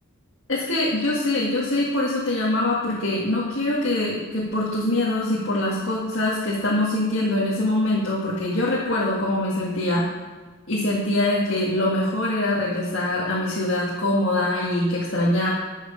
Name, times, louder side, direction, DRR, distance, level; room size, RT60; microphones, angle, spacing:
voice 1, 0.5-10.0 10.7-15.5, left 1 dB, 65° left, -5 dB, 2.0 m, -23 dB
12.5 x 6.5 x 5.2 m, 1.3 s
head